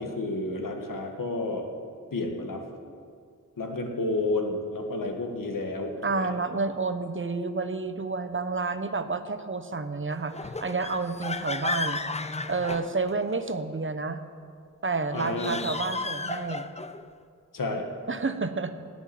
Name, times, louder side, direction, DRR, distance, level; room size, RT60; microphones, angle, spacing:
voice 1, 0.0-1.6 2.1-2.6 3.6-6.3 15.1-15.6 17.5-17.8, left 2 dB, 85° left, 3 dB, 1.8 m, -30 dB
voice 2, 6.0-12.0 12.4-14.2 14.8-16.7 18.1-18.7, right 4 dB, 40° right, 10 dB, 0.9 m, -30 dB
sound 1, 10.3-13.4 15.0-17.0, left 3 dB, 20° left, 0.6 m, -34 dB
18.0 x 6.3 x 9.2 m, 2.2 s
wide cardioid pair, 90°, 32 cm